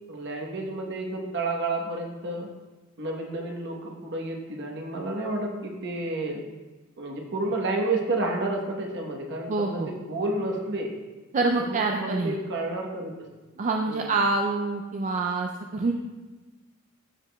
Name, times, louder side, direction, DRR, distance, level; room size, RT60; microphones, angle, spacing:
voice 1, 0.0-2.5 3.0-6.4 7.0-10.9 11.6-13.1 13.6-13.7 14.0-14.1, right 2 dB, 55° right, 1 dB, 1.0 m, -30 dB
voice 2, 9.5-9.9 11.3-12.4 13.6-15.9, right 3 dB, 35° right, 2 dB, 0.3 m, -26 dB
12.5 x 4.9 x 2.2 m, 1.2 s
head